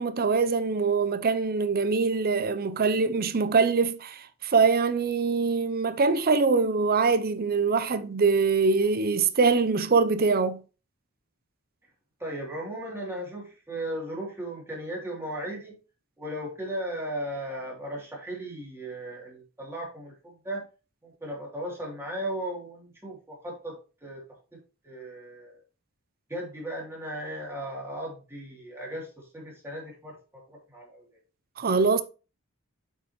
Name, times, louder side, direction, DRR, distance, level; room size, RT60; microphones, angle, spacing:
voice 1, 0.0-10.6 31.6-32.0, right 4 dB, 45° right, 0.6 m, -23 dB
voice 2, 12.2-15.7 16.2-20.6 21.0-24.2 24.5-24.6 24.8-25.6 26.3-30.2 30.5-31.0, right 1 dB, 10° right, 3.1 m, -36 dB
8.5 x 5.7 x 3.1 m
head